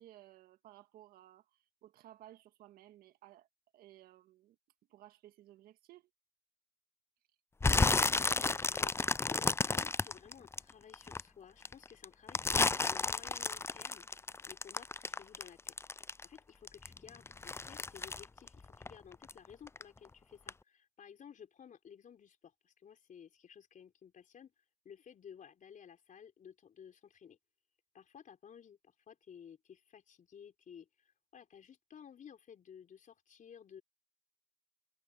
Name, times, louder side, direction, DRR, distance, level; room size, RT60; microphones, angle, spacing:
voice 1, 0.0-3.5 3.7-4.6 4.9-6.1, right 14 dB, 80° right, 1.9 m, -58 dB
sound 1, 7.6-11.2 11.6-16.4 16.7-19.4 19.7-20.1 20.5-20.6, left 3 dB, 15° left, 0.4 m, -32 dB
voice 2, 8.7-9.0 9.3-14.1 14.5-15.8 16.2-27.4 27.9-33.8, left 8 dB, 60° left, 4.0 m, -55 dB
hypercardioid pair, 50°, 15 cm